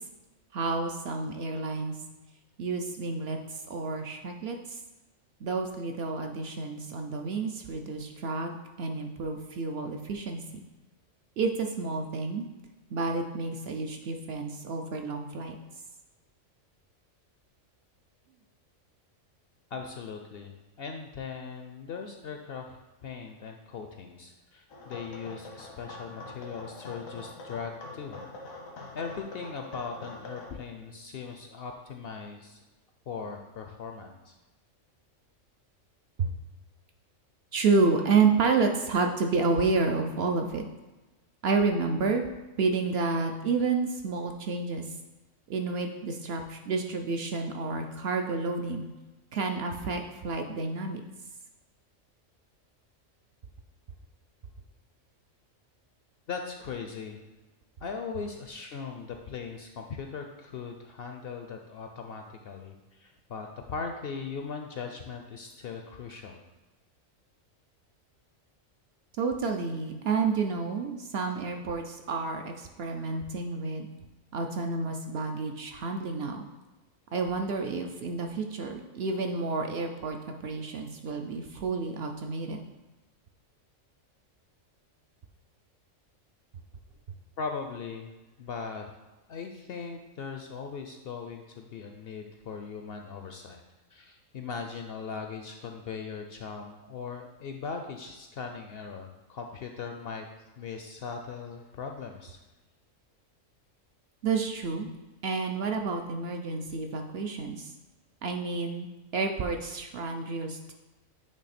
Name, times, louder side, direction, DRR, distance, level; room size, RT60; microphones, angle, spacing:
voice 1, 0.5-2.0 2.6-4.8 5.4-10.4 11.4-12.5 12.9-15.6 36.2-36.3 37.5-40.7 41.4-42.2 42.6-45.0 45.5-48.9 49.3-51.0 69.2-73.9 74.3-76.4 77.1-82.6 104.2-104.9 105.2-107.7 108.2-110.7, right 4 dB, 65° right, 4 dB, 0.7 m, -30 dB
voice 2, 19.7-22.8 23.0-28.2 28.9-32.6 33.1-34.3 56.3-57.2 57.8-66.4 87.4-88.1 88.4-88.9 89.3-93.6 93.9-100.3 100.6-102.4, left 5 dB, 65° left, 4 dB, 0.6 m, -39 dB
sound 1, 24.7-30.5, left 2 dB, 85° left, 1.4 m, -44 dB
8.5 x 3.3 x 4.2 m, 1.1 s
omnidirectional pair, 1.4 m